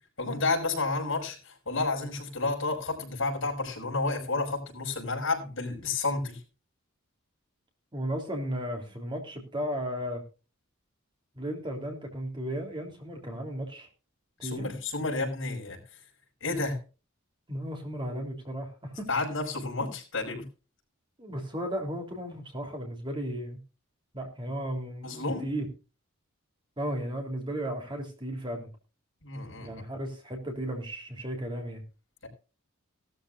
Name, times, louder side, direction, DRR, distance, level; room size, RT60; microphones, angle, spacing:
voice 1, 0.2-6.4 14.4-15.8 16.4-16.8 19.1-20.4 25.0-25.4 29.2-29.8 32.2-32.3, left 3 dB, 65° left, 2 dB, 5.8 m, -31 dB
voice 2, 7.9-10.2 11.3-13.9 14.4-14.7 17.5-19.1 21.2-23.6 24.1-25.7 26.8-28.7 29.6-31.8, equal, 25° right, 2 dB, 3.4 m, -35 dB
18.0 x 13.0 x 2.6 m, 0.33 s
head